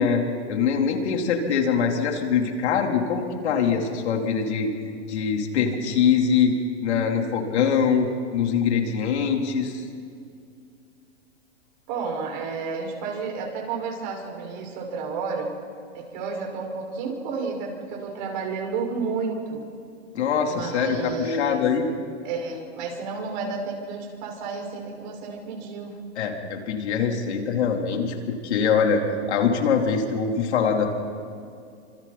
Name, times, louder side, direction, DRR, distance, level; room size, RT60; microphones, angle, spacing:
voice 1, 0.0-4.7 5.1-6.6 6.8-9.8 20.1-21.9 26.2-29.0 29.3-30.9, left 6 dB, 75° left, 1 dB, 4.0 m, -23 dB
voice 2, 11.9-15.6 15.9-19.6 20.5-21.6 22.2-25.9, right 4 dB, 45° right, 0 dB, 6.0 m, -31 dB
29.5 x 26.0 x 4.4 m, 2.3 s
hypercardioid pair, 140°, 34 cm